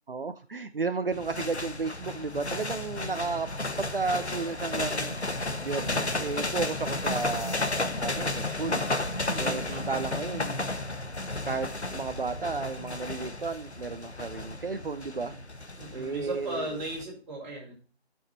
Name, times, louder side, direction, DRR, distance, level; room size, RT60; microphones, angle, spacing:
voice 1, 0.1-3.5 3.8-5.2 5.6-7.7 8.0-8.8 9.4-10.7 11.4-15.3 15.9-16.7, right 4 dB, 55° right, 9 dB, 0.8 m, -33 dB
sound 1, 1.1-17.0, left 2 dB, 85° left, 1.6 m, -33 dB
voice 2, 2.9-3.4 9.2-9.9 15.1-15.4 15.8-17.7, right 1 dB, 15° right, -6 dB, 4.3 m, -38 dB
12.5 x 6.5 x 4.2 m, 0.38 s
figure-of-eight pair, 165°, 32 cm